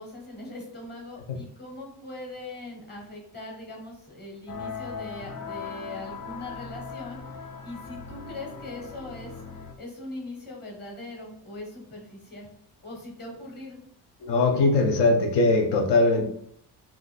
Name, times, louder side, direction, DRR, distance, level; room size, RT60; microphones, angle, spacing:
voice 1, 0.0-9.3 9.8-12.5 12.8-13.8, left 2 dB, 25° left, 0 dB, 1.1 m, -41 dB
sound 1, 4.5-9.7, left 5 dB, 50° left, 0.6 m, -39 dB
voice 2, 14.2-16.3, left 3 dB, 75° left, 4 dB, 0.9 m, -21 dB
2.9 x 2.6 x 4.1 m, 0.67 s
cardioid pair, 140°, 41 cm